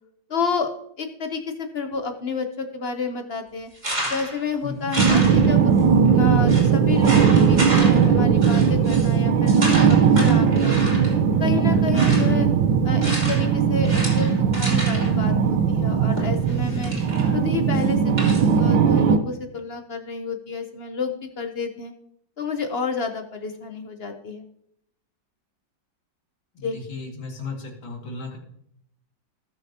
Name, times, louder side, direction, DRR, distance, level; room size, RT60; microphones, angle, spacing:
voice 1, 0.3-0.7 1.0-3.7 4.1-5.7 6.1-10.8 11.4-12.5 12.8-16.9 17.3-21.9 22.4-24.4 26.6-26.8, left 4 dB, 55° left, 6 dB, 0.6 m, -30 dB
sound 1, 3.8-4.4 4.9-5.8 6.0-6.1 6.5-6.7 7.0-8.1 8.4-9.1 9.5-11.2 11.7-12.4 13.0-13.5 13.8-15.1 16.2-17.3 17.7-18.5, right 1 dB, 20° right, 2.9 m, -31 dB
voice 2, 4.6-4.9 16.5-17.1 26.5-28.4, left 3 dB, 85° left, 1 dB, 2.8 m, -35 dB
sound 2, 5.0-19.2, right 6 dB, 80° right, 1.5 m, -18 dB
18.0 x 6.7 x 2.8 m, 0.71 s
omnidirectional pair, 2.1 m